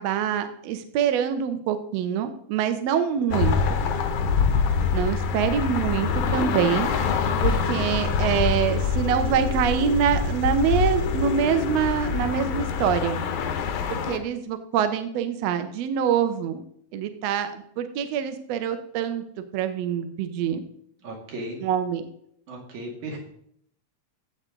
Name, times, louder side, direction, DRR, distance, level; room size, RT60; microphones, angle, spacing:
voice 1, 0.0-3.6 4.9-13.2 13.9-16.6 16.9-19.2 19.5-20.6 21.6-22.0, right 8 dB, 75° right, 8 dB, 1.8 m, -25 dB
sound 1, 3.3-14.2, left 6 dB, 80° left, 2.3 m, -25 dB
voice 2, 3.3-3.7 21.0-21.6 22.5-23.2, right 1 dB, 90° right, 0 dB, 3.6 m, -36 dB
13.0 x 7.8 x 3.8 m, 0.69 s
omnidirectional pair, 3.3 m